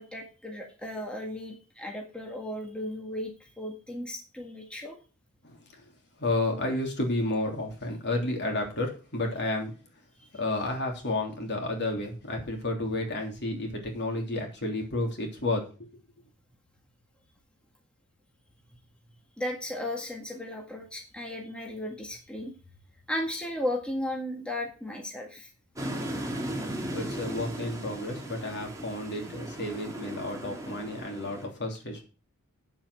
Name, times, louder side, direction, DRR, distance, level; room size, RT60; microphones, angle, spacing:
voice 1, 0.0-5.0 10.2-10.3 19.4-22.5 23.1-25.5, left 1 dB, 5° left, 1 dB, 1.8 m, -35 dB
voice 2, 5.4-5.8 6.2-9.8 10.4-15.9 26.9-32.0, left 2 dB, 50° left, 2 dB, 3.3 m, -31 dB
sound 1, 25.8-31.5, right 1 dB, 15° right, 2.7 m, -37 dB
8.6 x 7.7 x 6.3 m, 0.34 s
head